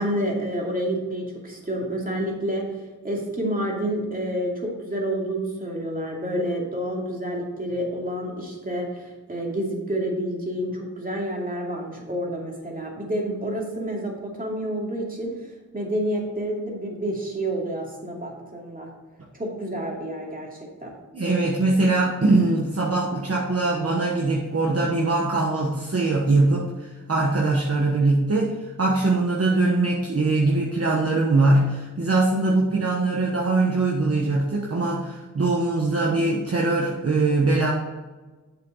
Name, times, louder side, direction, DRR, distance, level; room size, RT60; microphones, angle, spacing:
voice 1, 0.0-2.7 3.0-15.5 15.7-18.9 19.3-20.9, right 1 dB, 25° right, -2 dB, 2.5 m, -29 dB
voice 2, 21.1-37.7, right 2 dB, 50° right, -2 dB, 1.3 m, -22 dB
7.8 x 6.9 x 3.9 m, 1.2 s
wide cardioid pair, 95°, 31 cm